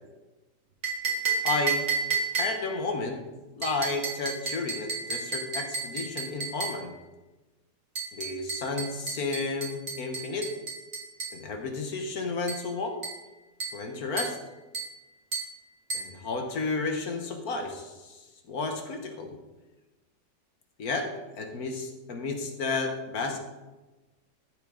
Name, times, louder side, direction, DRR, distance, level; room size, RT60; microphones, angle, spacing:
sound 1, 0.8-2.8 3.6-6.9 8.0-11.4 12.5-12.7 13.0-13.3 13.6-13.9 14.2-14.4 14.7-15.0 15.3-15.6 15.9-16.2, right 5 dB, 50° right, 2.1 m, -32 dB
voice 1, 1.4-1.9 2.4-3.2 3.6-6.9 8.1-10.5 11.3-13.0 13.7-14.4 15.9-19.4 20.8-21.1 21.4-23.4, left 3 dB, 65° left, 4 dB, 1.6 m, -32 dB
14.0 x 6.5 x 3.8 m, 1.1 s
omnidirectional pair, 1.8 m